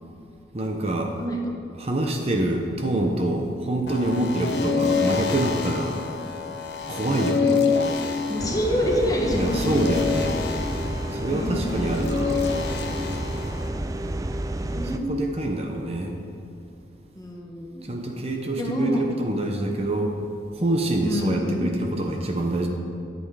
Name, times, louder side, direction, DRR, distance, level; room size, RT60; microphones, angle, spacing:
voice 1, 0.5-1.2 1.8-6.0 6.9-7.5 9.3-10.3 11.1-12.4 14.9-16.1 17.8-20.2 20.5-22.7, right 1 dB, 35° right, 2 dB, 0.8 m, -26 dB
sound 1, 3.9-13.7, left 5 dB, 75° left, 0.9 m, -27 dB
voice 2, 8.3-9.8 11.2-11.6 14.1-14.2 14.6-15.2 17.1-17.9 18.6-19.0 19.5-19.8 21.0-21.7, equal, 20° left, 0 dB, 1.3 m, -27 dB
sound 2, 8.4-15.0, right 1 dB, 20° right, 0.4 m, -30 dB
11.0 x 8.0 x 4.8 m, 2.7 s
head